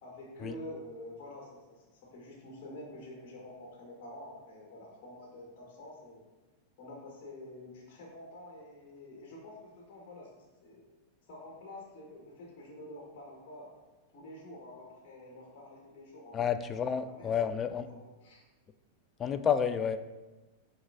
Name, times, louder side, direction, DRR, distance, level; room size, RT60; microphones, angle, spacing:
voice 1, 0.0-6.2 6.8-10.9 11.3-13.7 14.1-16.5 17.0-17.4 17.9-18.4, left 1 dB, 45° left, -2 dB, 1.7 m, -48 dB
voice 2, 16.3-17.9 19.2-20.0, left 7 dB, 25° left, 11 dB, 0.4 m, -30 dB
9.6 x 4.6 x 2.7 m, 1.1 s
figure-of-eight pair, 90°, 0 cm